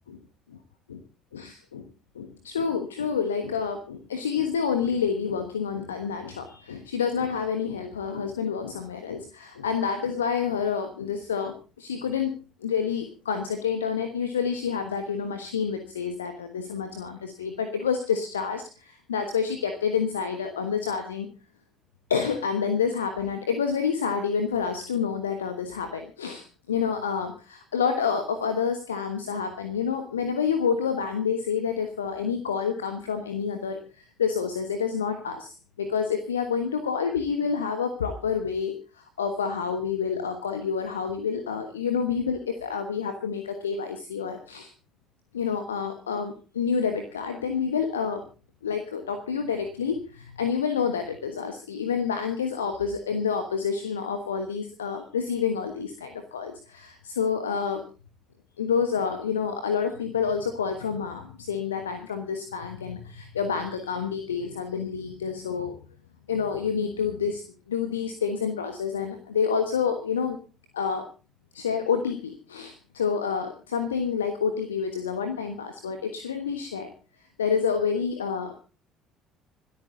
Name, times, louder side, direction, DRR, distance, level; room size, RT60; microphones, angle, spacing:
voice 1, 1.3-1.9 2.1-12.3 12.6-21.3 22.1-44.7 45.3-48.2 48.6-57.8 58.6-65.8 66.3-67.4 67.7-70.4 70.7-71.1 71.5-76.9 77.4-78.5, left 6 dB, 75° left, 7 dB, 1.3 m, -28 dB
26.0 x 8.9 x 3.8 m, 0.35 s
figure-of-eight pair, 55°, 0 cm